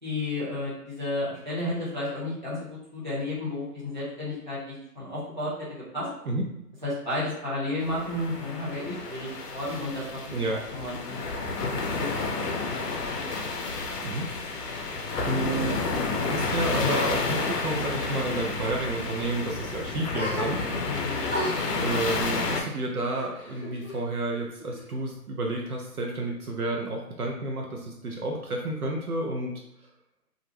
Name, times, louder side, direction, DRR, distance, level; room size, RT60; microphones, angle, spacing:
voice 1, 0.0-6.1 6.8-11.2 11.5-13.5 20.9-21.2, left 1 dB, 30° right, -10 dB, 0.7 m, -33 dB
sound 1, 7.8-22.6, left 3 dB, 90° left, 0.6 m, -30 dB
voice 2, 15.2-15.9 16.2-20.9 21.8-29.5, right 2 dB, 65° right, -1 dB, 0.6 m, -31 dB
sound 2, 20.2-20.9 21.3-24.0 24.3-25.2, left 1 dB, 40° left, 0.6 m, -36 dB
2.4 x 2.0 x 2.9 m, 0.81 s
hypercardioid pair, 175°, 47 cm